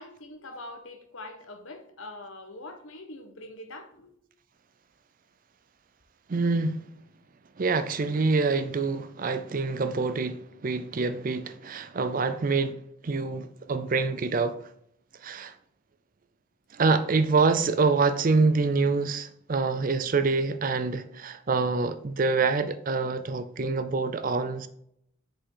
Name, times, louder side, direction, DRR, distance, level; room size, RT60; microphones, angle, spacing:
voice 1, 0.0-4.1, left 2 dB, 65° left, 1.1 m, -43 dB
voice 2, 6.3-6.8 7.6-14.6 15.2-15.5 16.7-24.7, right 4 dB, 40° right, 0.4 m, -26 dB
6.2 x 5.3 x 3.8 m
head